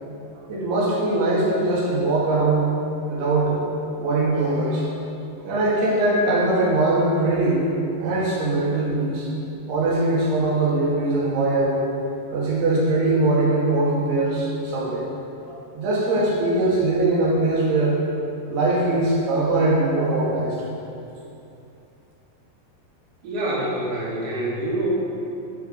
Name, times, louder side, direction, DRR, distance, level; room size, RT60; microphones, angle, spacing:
voice 1, 0.5-2.8 3.1-3.6 4.0-4.9 5.4-7.6 8.0-9.3 9.7-11.8 12.3-15.0 15.5-18.0 18.5-20.6, right 2 dB, 85° right, -6 dB, 4.1 m, -21 dB
voice 2, 23.2-25.0, right 1 dB, 45° right, -6 dB, 2.8 m, -26 dB
10.5 x 7.3 x 5.2 m, 2.7 s
omnidirectional pair, 4.6 m